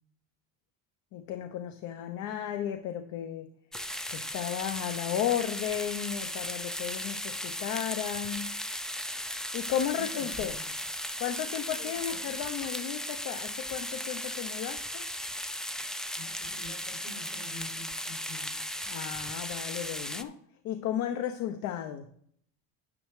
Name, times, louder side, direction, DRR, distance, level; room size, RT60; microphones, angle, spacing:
voice 1, 1.1-3.5 4.1-8.5 9.5-10.6 11.2-15.0 18.9-20.4 20.6-22.1, left 10 dB, 65° left, 7 dB, 0.9 m, -34 dB
sound 1, 3.7-20.2, left 1 dB, ahead, 0.4 m, -36 dB
voice 2, 9.9-10.7 11.8-12.4 16.1-18.7, left 2 dB, 80° left, -2 dB, 4.3 m, -47 dB
9.8 x 8.9 x 3.3 m, 0.65 s
supercardioid pair, 110°, 32 cm